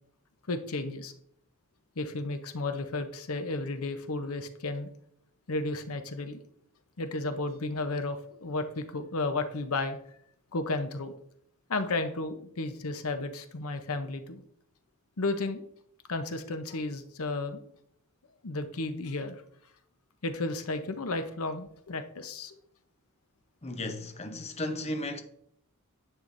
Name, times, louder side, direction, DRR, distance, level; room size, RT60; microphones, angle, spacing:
voice 1, 0.5-1.1 2.0-4.9 5.5-6.4 7.0-10.0 10.5-11.1 11.7-14.4 15.2-15.6 16.1-17.6 18.4-19.4 20.2-22.5, left 2 dB, 75° left, 0.8 m, -33 dB
voice 2, 23.6-25.2, left 1 dB, 30° left, 0.9 m, -35 dB
10.0 x 8.2 x 2.6 m
head